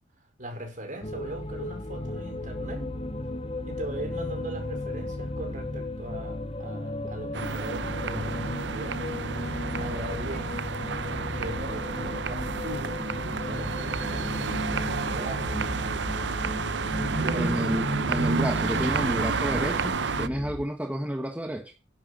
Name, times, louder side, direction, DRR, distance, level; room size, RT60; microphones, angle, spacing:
voice 1, 0.4-2.9 3.7-9.5 9.8-10.6 11.4-13.0 13.5-15.6 17.0-17.5, right 1 dB, 40° right, 5.0 m, -39 dB
sound 1, 1.0-20.7, left 1 dB, 30° left, 1.0 m, -34 dB
sound 2, 7.3-20.3, right 4 dB, 65° right, 0.7 m, -30 dB
voice 2, 17.3-21.7, equal, 10° right, 1.4 m, -30 dB
11.0 x 6.8 x 7.8 m
head